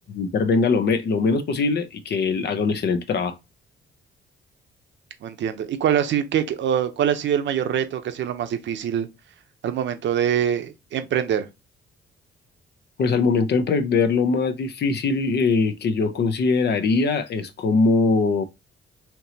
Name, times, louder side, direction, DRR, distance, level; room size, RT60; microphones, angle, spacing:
voice 1, 0.2-3.4 13.0-18.4, left 4 dB, 55° left, 0.7 m, -21 dB
voice 2, 5.2-9.1 9.6-11.5, right 9 dB, 70° right, 0.7 m, -24 dB
4.5 x 2.9 x 2.8 m
cardioid pair, 90°, 20 cm